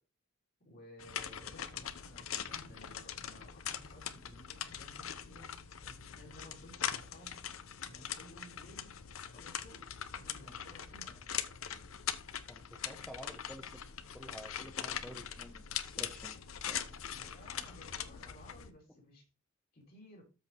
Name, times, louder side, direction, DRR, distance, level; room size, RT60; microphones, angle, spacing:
voice 1, 0.6-5.5 5.8-7.3 7.8-8.9 9.3-11.2 17.2-19.3 19.7-20.2, left 1 dB, 50° left, -2 dB, 4.1 m, -56 dB
sound 1, 1.0-18.7, left 9 dB, 80° left, 0.7 m, -42 dB
voice 2, 12.5-13.8 14.1-16.4 16.6-16.8, equal, 5° left, 3 dB, 0.9 m, -50 dB
13.0 x 4.8 x 3.5 m, 0.31 s
head